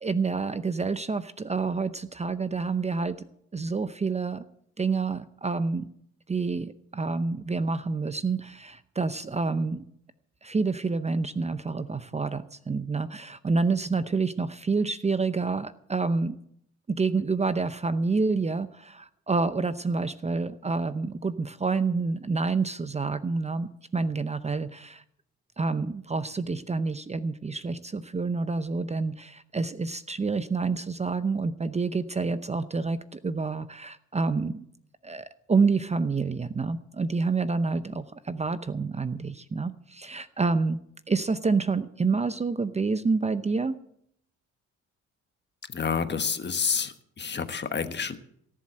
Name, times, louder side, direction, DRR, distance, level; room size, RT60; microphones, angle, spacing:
voice 1, 0.0-3.3 3.5-4.5 4.8-5.9 6.3-9.8 10.4-16.4 16.9-25.0 25.6-34.7 35.0-40.8 41.1-43.8, right 4 dB, 20° right, 12 dB, 0.6 m, -28 dB
voice 2, 45.7-48.2, left 6 dB, 35° left, 9 dB, 1.3 m, -29 dB
18.0 x 7.5 x 7.6 m, 0.69 s
cardioid pair, 90°, 30 cm